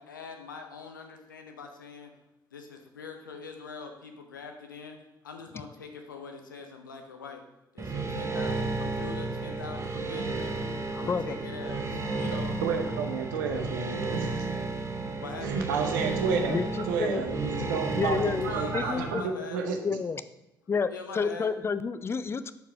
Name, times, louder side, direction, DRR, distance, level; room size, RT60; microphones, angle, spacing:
voice 1, 0.0-2.1 2.5-5.0 5.2-7.4 7.7-10.6 10.9-12.6 14.4-14.9 15.2-15.6 17.6-17.7 18.4-19.6 20.9-21.5, left 5 dB, 80° left, 4 dB, 0.6 m, -43 dB
sound 1, 7.8-19.1, right 3 dB, 30° right, 0.9 m, -32 dB
voice 2, 11.1-11.4 16.5-17.2 18.0-18.5 18.7-19.2 19.8-20.2 20.7-22.5, left 5 dB, 25° left, 13 dB, 0.4 m, -29 dB
voice 3, 12.6-14.3 15.4-16.6 16.9-19.2 19.5-19.8, right 5 dB, 70° right, 4 dB, 0.7 m, -31 dB
5.7 x 4.6 x 4.8 m, 0.93 s
figure-of-eight pair, 45°, 10 cm